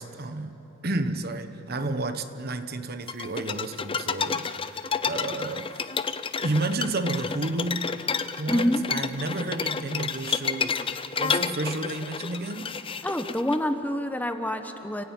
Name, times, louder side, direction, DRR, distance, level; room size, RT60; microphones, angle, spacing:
voice 1, 0.0-5.9 6.4-8.0 8.4-10.8 11.2-12.7, right 2 dB, 55° right, 1.2 m, -31 dB
sound 1, 3.1-13.6, left 5 dB, 25° left, 0.6 m, -30 dB
voice 2, 8.5-8.8 13.0-15.0, left 1 dB, 10° left, 1.1 m, -27 dB
30.0 x 18.0 x 9.1 m
head